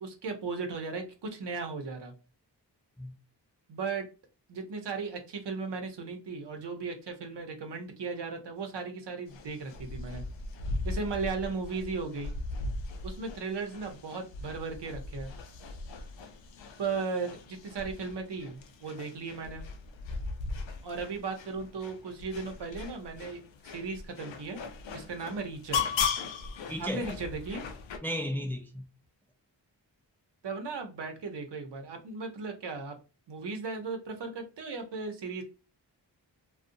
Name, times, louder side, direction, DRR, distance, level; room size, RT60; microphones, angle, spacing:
voice 1, 0.0-2.1 3.7-4.1 4.5-10.2 10.8-12.3 13.0-15.3 16.8-19.6 20.8-24.6 24.9-25.8 26.8-27.6 30.4-33.0 33.3-35.4, right 4 dB, 65° right, 0.8 m, -36 dB
sound 1, 9.3-28.0, left 4 dB, 85° left, 0.5 m, -38 dB
voice 2, 26.7-27.1 28.0-28.8, equal, 5° left, 0.5 m, -34 dB
2.6 x 2.3 x 2.5 m
cardioid pair, 55°, 44 cm